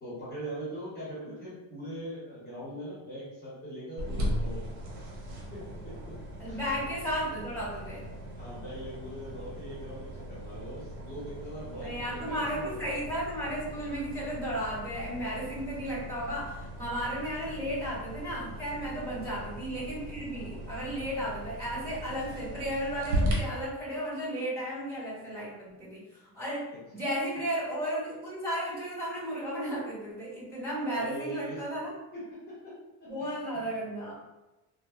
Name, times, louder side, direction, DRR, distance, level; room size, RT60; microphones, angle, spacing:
voice 1, 0.0-4.6 5.5-6.1 6.4-6.6 8.4-12.8 19.2-19.4 30.9-31.6 32.1-32.7 33.0-33.8, right 1 dB, 20° left, -10 dB, 1.0 m, -41 dB
sound 1, 4.0-23.3, equal, 90° right, 1.1 m, -38 dB
voice 2, 6.4-8.1 11.8-31.9 33.1-34.1, equal, 20° right, -9 dB, 1.5 m, -34 dB
3.6 x 2.3 x 2.4 m, 1.1 s
cardioid pair, 165°, 45 cm